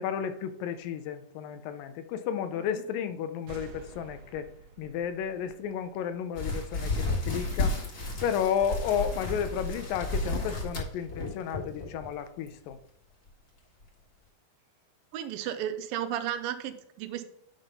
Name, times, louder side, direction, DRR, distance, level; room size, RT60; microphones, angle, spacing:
voice 1, 0.0-4.5 4.8-7.8 8.2-12.8, left 8 dB, 85° left, 10 dB, 2.4 m, -32 dB
sound 1, 3.5-7.0, right 5 dB, 70° right, 1.5 m, -51 dB
sound 2, 6.4-12.1 12.5-12.7 13.3-13.4 13.8-13.9, left 2 dB, 35° left, 1.7 m, -32 dB
voice 2, 15.1-17.2, right 10 dB, 85° right, 9 dB, 2.4 m, -34 dB
9.2 x 5.4 x 4.1 m, 0.73 s
omnidirectional pair, 4.0 m